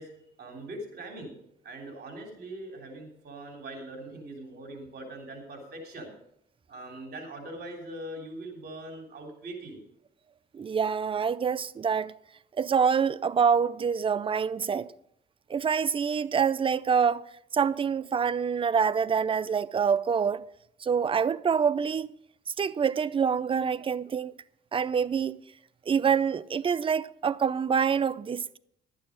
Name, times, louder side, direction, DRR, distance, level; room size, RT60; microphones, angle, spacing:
voice 1, 0.0-1.3 1.6-6.1 6.7-9.8, right 1 dB, 55° right, 3.4 m, -41 dB
voice 2, 10.5-12.1 12.6-14.9 15.5-17.3 17.5-20.5 20.8-22.1 22.6-24.3 24.7-25.4 25.9-28.6, right 6 dB, 25° right, 0.5 m, -26 dB
11.5 x 9.1 x 5.1 m
cardioid pair, 90°, 20 cm